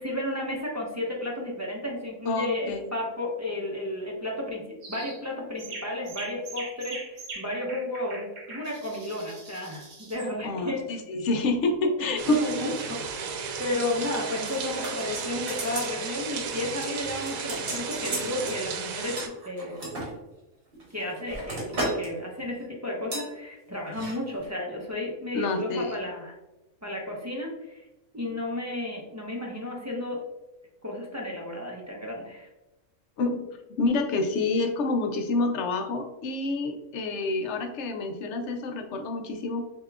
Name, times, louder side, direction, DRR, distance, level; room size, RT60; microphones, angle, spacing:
voice 1, 0.0-10.8 12.0-19.8 20.9-21.7 21.9-26.3 26.8-27.8 28.1-30.2 30.8-32.5, left 1 dB, 15° right, -3 dB, 0.6 m, -33 dB
voice 2, 2.3-2.8 10.4-12.4 25.3-26.0 33.2-33.4 33.7-39.7, left 2 dB, 60° left, 5 dB, 0.9 m, -28 dB
sound 1, 4.8-5.2 5.6-10.3, right 3 dB, 60° right, 1.4 m, -42 dB
sound 2, 12.2-19.3, right 5 dB, 80° right, 1.1 m, -34 dB
sound 3, 14.5-15.9 16.3-16.5 16.8-18.6 19.2-20.1 20.7-22.1 22.4-22.6 23.1-23.3 23.9-24.1 24.4-24.5, right 1 dB, 45° right, 1.6 m, -35 dB
6.4 x 2.9 x 2.4 m, 1.0 s
omnidirectional pair, 1.5 m